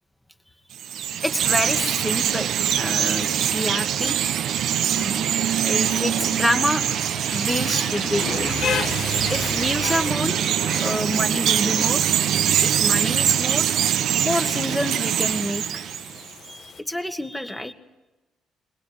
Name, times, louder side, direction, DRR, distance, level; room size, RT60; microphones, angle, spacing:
Chirp tweet, 0.7-16.3, right 9 dB, 75° right, 0.9 m, -23 dB
voice 1, 1.2-2.5 2.8-4.2 4.9-5.3 5.6-6.9 7.3-8.5 9.3-10.4 10.8-12.1 12.6-13.7 14.2-15.8 16.5-17.7, left 1 dB, 5° left, 7 dB, 1.8 m, -27 dB
Rain, 1.6-16.8, left 7 dB, 70° left, 1.4 m, -36 dB
23.0 x 20.0 x 9.7 m, 1.0 s
cardioid pair, 90°, 0 cm